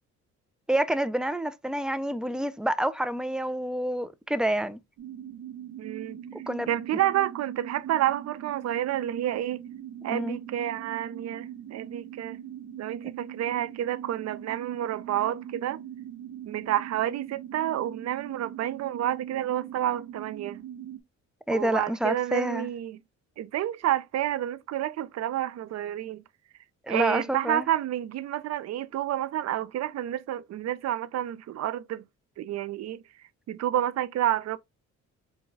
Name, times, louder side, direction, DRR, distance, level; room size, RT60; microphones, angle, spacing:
voice 1, 0.7-4.8 6.5-6.7 10.1-10.4 21.5-22.7 26.8-27.7, right 1 dB, 5° right, 0.3 m, -28 dB
sound 1, 5.0-21.0, right 10 dB, 85° right, 0.8 m, -41 dB
voice 2, 5.8-6.2 6.7-9.6 10.0-12.4 12.8-15.8 16.4-20.6 21.5-23.0 23.4-26.2 26.9-32.0 32.4-33.0 33.5-34.6, right 12 dB, 60° right, 0.5 m, -29 dB
4.7 x 2.2 x 3.9 m
cardioid pair, 90°, 30 cm